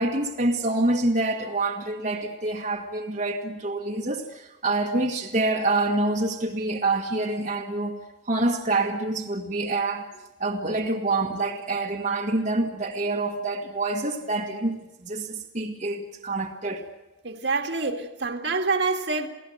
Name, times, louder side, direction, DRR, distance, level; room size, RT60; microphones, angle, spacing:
voice 1, 0.0-8.0 8.2-10.1 10.4-14.8 15.0-16.8, right 2 dB, 40° right, 1.7 m, -26 dB
voice 2, 17.2-19.3, right 3 dB, 60° right, 2.3 m, -26 dB
28.5 x 17.5 x 8.0 m
head